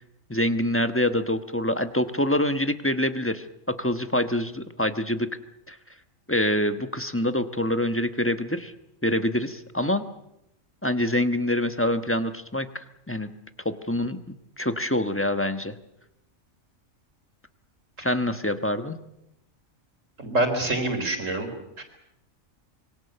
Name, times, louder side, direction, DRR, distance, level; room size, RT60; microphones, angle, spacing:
voice 1, 0.3-5.4 5.7-5.8 6.3-8.7 9.0-10.0 10.8-13.3 13.6-15.8 18.0-19.0, left 1 dB, 10° left, 9 dB, 1.1 m, -26 dB
voice 2, 20.2-21.5 21.8-21.9, right 2 dB, 70° right, 5 dB, 4.2 m, -26 dB
26.5 x 23.0 x 6.8 m, 0.82 s
omnidirectional pair, 1.4 m